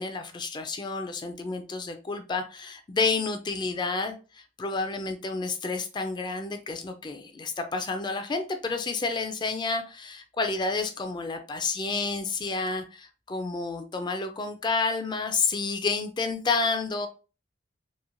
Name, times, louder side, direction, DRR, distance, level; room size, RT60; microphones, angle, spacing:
voice 1, 0.0-17.1, left 4 dB, 25° left, 7 dB, 0.3 m, -30 dB
3.0 x 2.4 x 2.4 m, 0.34 s
head